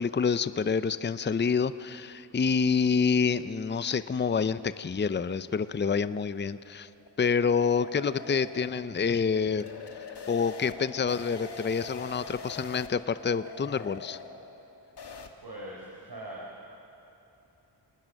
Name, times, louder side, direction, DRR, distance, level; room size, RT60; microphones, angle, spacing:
voice 1, 0.0-6.9 7.2-9.7 10.3-14.2, left 5 dB, 25° left, 14 dB, 0.6 m, -27 dB
sound 1, 6.3-15.3, left 4 dB, 55° left, 1.8 m, -44 dB
voice 2, 15.4-16.7, right 1 dB, 55° right, -4 dB, 4.5 m, -41 dB
28.0 x 19.5 x 6.4 m, 3.0 s
cardioid pair, 55°, 46 cm